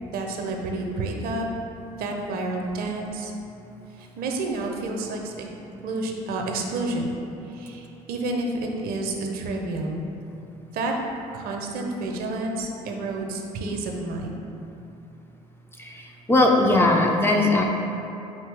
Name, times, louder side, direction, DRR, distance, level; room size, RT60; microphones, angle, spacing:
voice 1, 0.1-1.5 1.9-3.3 4.0-5.5 5.8-7.2 7.5-10.0 10.7-10.9 11.3-14.5, right 2 dB, 55° right, 2 dB, 0.5 m, -30 dB
voice 2, 15.8-17.6, left 2 dB, 10° left, 0 dB, 0.4 m, -20 dB
4.5 x 2.9 x 3.3 m, 2.8 s
hypercardioid pair, 55°, 19 cm